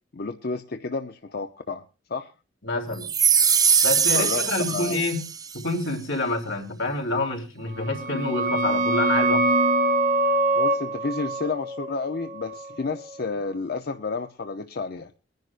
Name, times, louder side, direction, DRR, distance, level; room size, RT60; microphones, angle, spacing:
voice 1, 0.1-1.8 2.1-2.3 4.1-5.0 10.6-15.1, left 4 dB, 50° left, 7 dB, 0.6 m, -31 dB
voice 2, 2.6-3.1 3.8-5.3 5.5-9.5, left 2 dB, 80° left, 2 dB, 3.5 m, -27 dB
sound 1, 3.0-5.5, right 6 dB, 20° right, 0.6 m, -21 dB
sound 2, 7.8-13.2, right 2 dB, 45° right, 0.9 m, -24 dB
23.0 x 10.5 x 2.5 m, 0.31 s
head